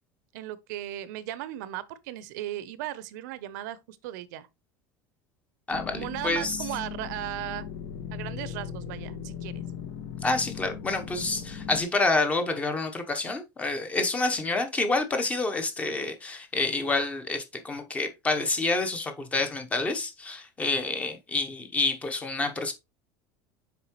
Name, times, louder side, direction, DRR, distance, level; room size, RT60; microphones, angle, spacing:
voice 1, 0.3-4.5 5.9-7.7 8.1-9.6, right 13 dB, 85° right, 0.7 m, -36 dB
sound 1, 5.7-11.8, left 7 dB, 55° left, 1.3 m, -38 dB
voice 2, 5.7-6.7 10.2-22.7, left 3 dB, 15° left, 0.9 m, -28 dB
6.9 x 4.6 x 3.0 m
cardioid pair, 170°, 10 cm